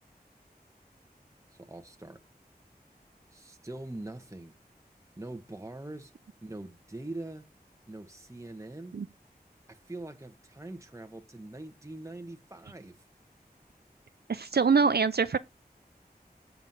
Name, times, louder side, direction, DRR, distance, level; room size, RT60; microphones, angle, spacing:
voice 1, 1.5-2.2 3.3-4.5 5.2-6.1 6.4-7.4 7.9-8.9 9.7-13.1, right 2 dB, 20° right, 1.1 m, -43 dB
voice 2, 14.3-15.4, right 5 dB, 75° right, 0.5 m, -24 dB
7.5 x 7.0 x 4.0 m
wide cardioid pair, 40°, 17 cm